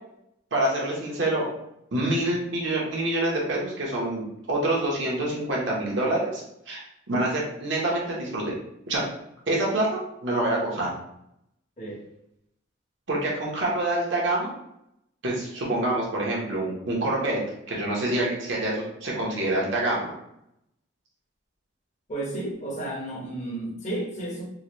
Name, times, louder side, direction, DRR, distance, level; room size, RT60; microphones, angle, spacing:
voice 1, 0.5-1.5 1.9-8.4 8.9-9.0 9.5-10.9 13.1-14.5 15.2-17.4 17.7-20.1, right 1 dB, 65° right, -4 dB, 1.0 m, -26 dB
voice 2, 22.1-24.4, right 1 dB, 35° left, -4 dB, 1.0 m, -32 dB
3.8 x 2.3 x 3.0 m, 0.79 s
head